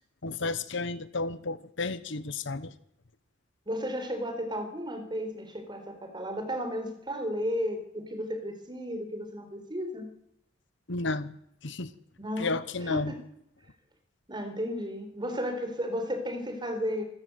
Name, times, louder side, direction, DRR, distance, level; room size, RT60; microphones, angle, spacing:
voice 1, 0.2-2.7 10.9-11.3 11.6-11.9 12.4-13.1, left 3 dB, 65° left, 14 dB, 1.2 m, -32 dB
voice 2, 3.7-10.1 12.2-12.5 12.8-13.2 14.3-17.0, equal, 25° right, 7 dB, 4.3 m, -33 dB
26.5 x 14.0 x 8.1 m, 0.75 s
head